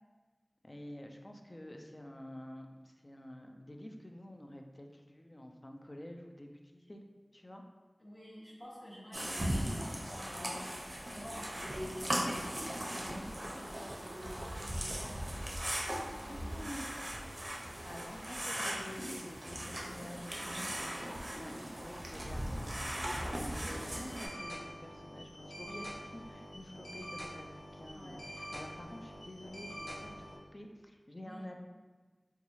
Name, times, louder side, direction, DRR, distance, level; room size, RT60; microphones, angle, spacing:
voice 1, 0.6-7.0 7.3-7.6 10.4-10.6 16.3-16.9 17.8-20.9 21.3-31.6, left 1 dB, 35° left, 3 dB, 0.3 m, -49 dB
voice 2, 8.0-10.7 11.0-15.5 16.0-16.9 20.4-20.8 21.5-21.9 27.9-28.2 31.2-31.4, equal, 15° left, -8 dB, 1.3 m, -50 dB
sound 1, 9.1-24.3, equal, 45° right, 0.6 m, -38 dB
Stream, 11.9-18.2, right 1 dB, 85° right, 0.3 m, -56 dB
sound 2, 23.8-30.4, equal, 80° left, 0.7 m, -46 dB
3.9 x 2.3 x 3.0 m, 1.3 s
wide cardioid pair, 50°, 0 cm